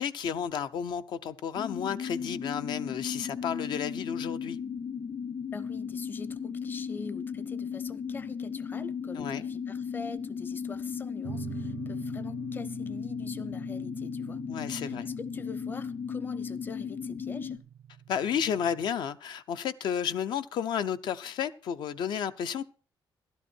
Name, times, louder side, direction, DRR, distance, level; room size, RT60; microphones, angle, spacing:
voice 1, 0.0-4.6 9.2-9.4 14.5-15.1 18.1-22.6, left 8 dB, 75° left, 0.6 m, -32 dB
sound 1, 1.5-17.6, left 6 dB, 40° left, 0.9 m, -36 dB
voice 2, 5.5-14.4 14.7-17.6, left 4 dB, 25° left, 0.6 m, -43 dB
sound 2, 11.2-18.9, right 9 dB, 70° right, 0.5 m, -45 dB
13.0 x 12.0 x 4.4 m
cardioid pair, 155°, 8 cm